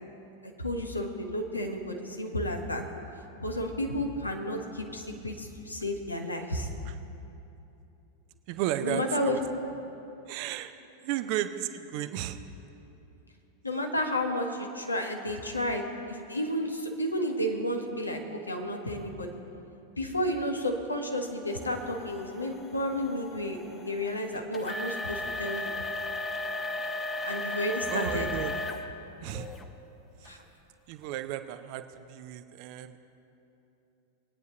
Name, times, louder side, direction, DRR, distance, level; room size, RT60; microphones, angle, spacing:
voice 1, 0.4-2.8 3.4-6.7 8.8-9.4 13.6-19.3 20.0-25.7 27.2-28.3 30.2-30.4, left 1 dB, 80° left, 3 dB, 1.2 m, -32 dB
voice 2, 8.5-9.4 10.3-10.7 11.0-12.4 27.9-28.6 29.2-29.5 30.2-30.3 30.9-33.0, right 12 dB, 45° right, 10 dB, 0.6 m, -34 dB
sound 1, 21.5-28.9 29.3-29.6 30.2-30.3 31.0-31.1, left 2 dB, 15° left, 0.9 m, -36 dB
21.5 x 9.3 x 2.9 m, 2.9 s
figure-of-eight pair, 90°, 0 cm